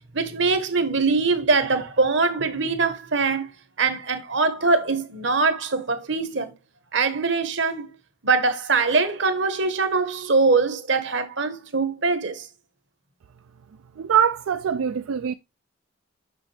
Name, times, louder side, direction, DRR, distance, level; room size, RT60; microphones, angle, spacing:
voice 1, 0.1-3.5 3.8-6.5 6.9-7.9 8.2-12.4, right 4 dB, 60° right, 1.1 m, -22 dB
voice 2, 14.0-15.3, right 8 dB, 85° right, 0.4 m, -23 dB
6.8 x 6.2 x 3.3 m
head